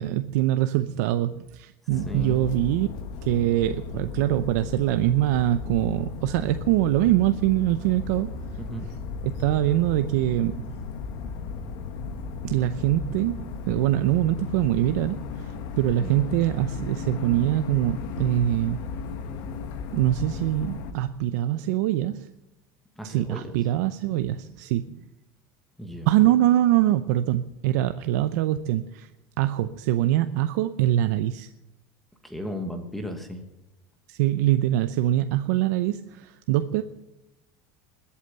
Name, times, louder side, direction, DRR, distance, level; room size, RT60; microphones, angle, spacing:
voice 1, 0.0-2.9 3.2-8.3 9.2-10.8 12.4-18.9 19.9-22.3 23.0-25.0 26.1-29.1 29.4-31.5 34.1-36.8, right 14 dB, 75° right, 10 dB, 0.7 m, -24 dB
sound 1, 1.9-20.9, left 5 dB, 50° left, 1.4 m, -35 dB
voice 2, 2.1-2.4 8.6-8.9 16.0-16.4 23.0-23.4 25.8-26.1 32.2-33.4, left 1 dB, ahead, 5 dB, 1.3 m, -35 dB
21.0 x 8.5 x 6.8 m, 0.96 s
cardioid pair, 175°, 9 cm